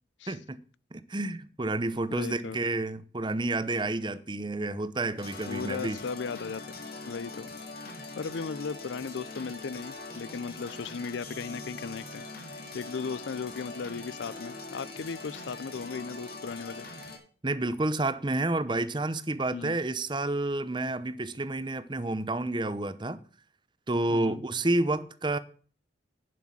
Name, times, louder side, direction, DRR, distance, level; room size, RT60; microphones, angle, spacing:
voice 1, 0.3-0.6 0.9-6.0 17.4-23.2 23.9-25.4, right 2 dB, 25° right, 0.8 m, -30 dB
voice 2, 2.1-2.6 5.5-6.6 7.1-7.5 8.2-12.3 12.7-16.9 19.5-19.8 24.1-24.4, left 5 dB, 80° left, 0.5 m, -36 dB
sound 1, 5.2-17.2, left 3 dB, 55° left, 2.7 m, -42 dB
11.0 x 6.1 x 7.3 m
head